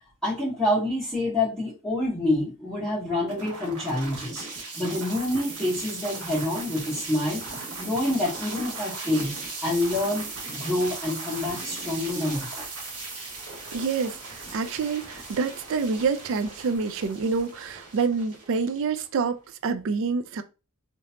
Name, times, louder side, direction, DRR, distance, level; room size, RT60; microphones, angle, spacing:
voice 1, 0.2-4.4 4.7-7.4 7.8-9.3 9.6-10.2 10.5-12.6, left 1 dB, 5° left, 1.6 m, -27 dB
sound 1, 3.3-19.3, right 3 dB, 85° right, 1.5 m, -38 dB
voice 2, 13.7-20.4, right 5 dB, 60° right, 0.4 m, -27 dB
3.2 x 3.0 x 2.7 m
head